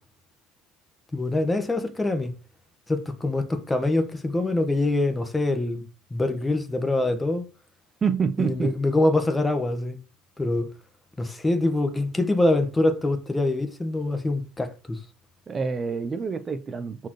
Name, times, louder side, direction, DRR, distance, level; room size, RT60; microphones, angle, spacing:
voice 1, 1.1-2.3 2.9-5.8 6.1-7.5 8.4-10.0 10.4-10.7 11.2-15.0, left 2 dB, 10° left, 1.4 m, -24 dB
voice 2, 8.0-8.8 15.5-17.1, right 5 dB, 25° right, 0.7 m, -27 dB
13.5 x 4.6 x 3.1 m
supercardioid pair, 115°, 0 cm